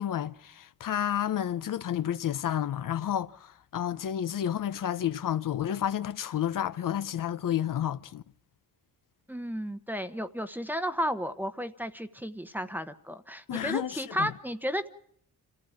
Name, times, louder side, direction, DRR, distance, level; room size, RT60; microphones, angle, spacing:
voice 1, 0.0-8.2 13.5-14.3, left 10 dB, 55° left, 0.9 m, -31 dB
voice 2, 9.3-14.9, equal, 5° right, 1.0 m, -33 dB
27.5 x 15.0 x 8.7 m
wide cardioid pair, 135°, 37 cm